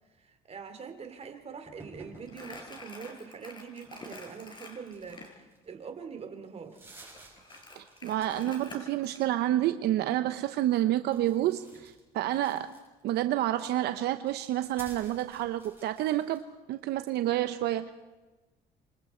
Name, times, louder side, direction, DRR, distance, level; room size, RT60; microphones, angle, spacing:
voice 1, 0.2-6.8, right 6 dB, 40° right, 7 dB, 2.9 m, -44 dB
sound 1, 1.7-2.3 3.7-5.7 6.2-6.3 6.6-8.7 9.0-9.5 11.1-13.1 13.8-16.5, right 2 dB, 15° right, 7.1 m, -53 dB
Crumpling crinkling, 2.3-5.3 7.0-9.2, left 2 dB, 30° left, 4.9 m, -47 dB
voice 2, 7.8-12.7 13.0-16.4 16.7-17.9, right 13 dB, 75° right, 10 dB, 0.8 m, -29 dB
28.0 x 25.0 x 4.4 m, 1.2 s
cardioid pair, 110°, 17 cm